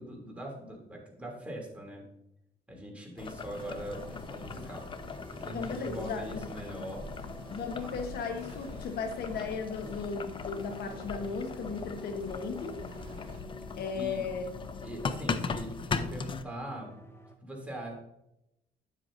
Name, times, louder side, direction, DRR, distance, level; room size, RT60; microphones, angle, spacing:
voice 1, 0.0-2.1 2.7-7.1 7.8-7.9 13.9-14.2 14.8-17.0 17.4-17.9, right 1 dB, 5° right, -2 dB, 2.8 m, -42 dB
Boiling, 3.2-16.4, left 5 dB, 30° left, 0.5 m, -39 dB
sound 1, 3.5-13.4, right 2 dB, 35° right, 3.1 m, -50 dB
sound 2, 3.7-17.4, left 4 dB, 15° left, 0.9 m, -50 dB
voice 2, 5.5-6.5 7.5-12.8 13.8-14.5, left 5 dB, 65° left, 5 dB, 1.2 m, -36 dB
9.8 x 7.6 x 2.6 m, 0.84 s
cardioid pair, 110°, 17 cm